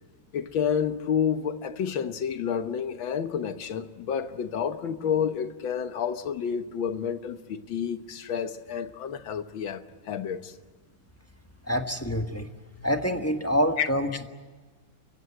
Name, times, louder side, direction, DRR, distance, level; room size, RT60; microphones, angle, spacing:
voice 1, 0.3-10.6 13.8-13.9, left 7 dB, 85° left, 1.9 m, -29 dB
voice 2, 11.6-12.5 12.8-14.3, equal, 10° left, 1.0 m, -26 dB
29.0 x 16.0 x 9.8 m
omnidirectional pair, 2.1 m